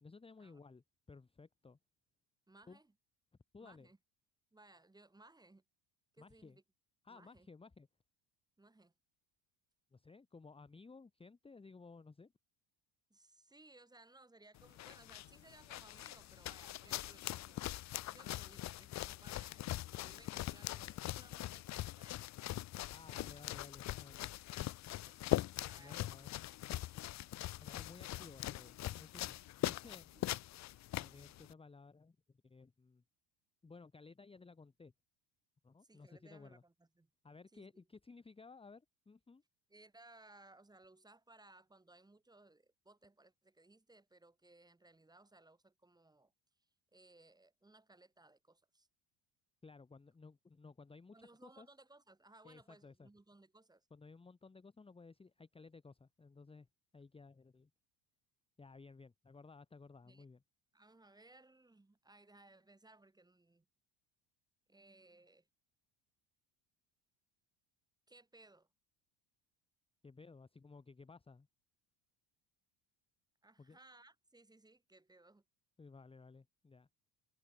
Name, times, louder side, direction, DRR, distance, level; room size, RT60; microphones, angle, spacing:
voice 1, 0.0-1.8 2.7-2.8 3.5-3.9 6.2-6.6 7.0-7.9 9.9-12.3 22.9-24.3 25.7-26.4 27.6-30.1 30.9-32.2 32.4-33.0 33.6-34.9 35.6-36.6 37.2-39.4 49.6-51.2 51.4-51.7 52.4-53.1 53.9-56.7 56.9-57.7 58.6-60.4 70.0-71.5 73.6-73.8 75.8-76.9, left 4 dB, 10° left, 1.4 m, -57 dB
voice 2, 2.5-2.9 3.6-4.0 4.5-5.6 6.1-6.6 7.1-7.5 8.6-8.9 13.1-17.7 18.1-22.3 23.1-23.4 24.9-25.3 25.6-26.2 30.1-30.3 35.8-37.1 37.5-37.8 39.7-46.3 46.9-48.9 51.1-53.9 60.0-60.3 60.7-63.7 64.7-65.5 68.1-68.7 73.4-75.4, right 2 dB, 10° right, 2.5 m, -63 dB
sound 1, 14.5-31.5, left 15 dB, 35° left, 0.5 m, -42 dB
cardioid pair, 155°, 50 cm